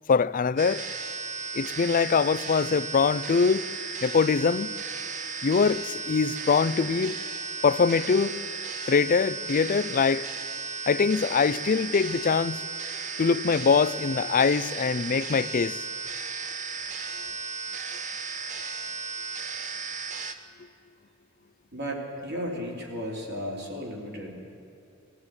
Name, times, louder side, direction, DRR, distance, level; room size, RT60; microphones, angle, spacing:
voice 1, 0.1-0.8 1.5-3.6 4.0-4.7 5.4-7.2 7.6-8.4 8.9-10.3 10.9-12.6 13.2-15.8, left 5 dB, 40° left, 0.4 m, -23 dB
sound 1, 0.6-20.3, right 5 dB, 35° right, 1.0 m, -35 dB
voice 2, 21.7-24.4, equal, 55° right, 3.4 m, -35 dB
20.5 x 14.0 x 9.6 m
head